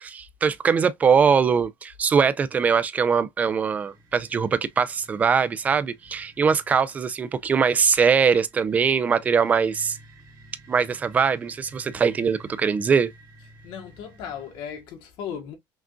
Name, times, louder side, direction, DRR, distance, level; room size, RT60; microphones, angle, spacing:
voice 1, 0.0-10.0 10.7-13.1, right 6 dB, 20° right, 0.3 m, -22 dB
sound 1, 3.4-14.8, right 1 dB, 50° right, 1.9 m, -51 dB
voice 2, 13.6-15.6, left 8 dB, 80° left, 1.3 m, -36 dB
5.9 x 2.5 x 2.3 m
cardioid pair, 180°, 8 cm